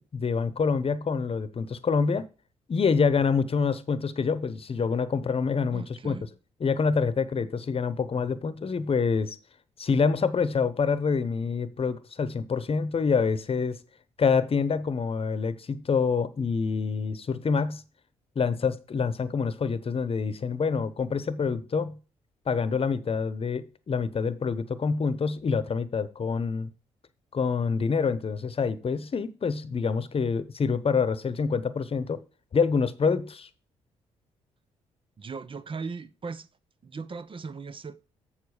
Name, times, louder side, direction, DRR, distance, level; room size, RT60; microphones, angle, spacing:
voice 1, 0.1-2.3 2.7-6.2 6.6-9.4 9.8-13.8 14.2-17.8 18.4-22.0 22.5-26.7 27.3-32.2 32.5-33.5, left 5 dB, 45° left, 1.0 m, -26 dB
voice 2, 5.7-6.3 35.2-36.5 36.8-38.0, right 4 dB, 40° right, 0.8 m, -38 dB
7.3 x 7.0 x 5.0 m
supercardioid pair, 50°, 14 cm